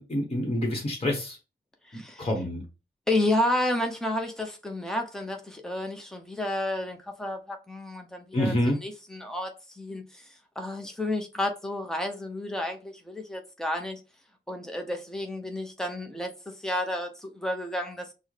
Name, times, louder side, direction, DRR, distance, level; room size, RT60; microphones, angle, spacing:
voice 1, 0.0-1.4 1.9-2.6 8.3-8.8, left 1 dB, 30° left, 1.2 m, -27 dB
voice 2, 1.9-2.3 3.1-8.5 8.8-10.3 10.6-14.0 14.5-18.1, left 1 dB, 5° left, 0.7 m, -31 dB
6.1 x 2.2 x 3.2 m
wide cardioid pair, 130°, 19 cm